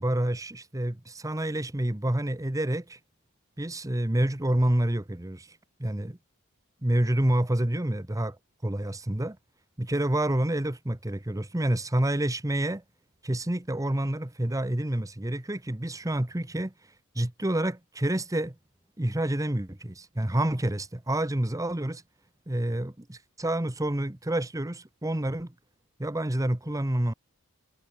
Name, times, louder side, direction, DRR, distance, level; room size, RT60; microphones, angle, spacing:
voice 1, 0.0-3.0 3.6-6.1 6.8-8.4 8.6-9.4 9.8-12.8 13.2-16.7 17.1-18.5 19.0-22.0 22.5-25.5 26.0-27.1, right 1 dB, 15° right, 1.1 m, -28 dB
head